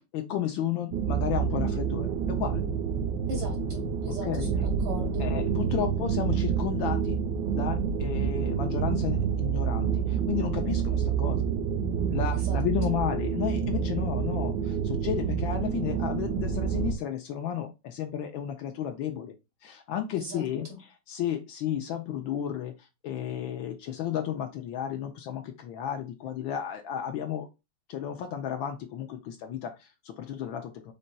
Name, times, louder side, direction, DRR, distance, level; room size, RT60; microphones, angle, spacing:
voice 1, 0.1-2.6 4.2-4.5 5.2-7.2 7.5-11.5 12.1-19.3 19.6-27.5 27.9-30.9, left 10 dB, 75° left, 5 dB, 1.2 m, -33 dB
sound 1, 0.9-16.9, right 7 dB, 70° right, 1.1 m, -28 dB
voice 2, 3.3-5.3 12.3-12.6 12.9-13.0 20.2-20.4, right 1 dB, 55° right, 0 dB, 2.7 m, -39 dB
5.2 x 4.2 x 2.2 m, 0.24 s
omnidirectional pair, 2.4 m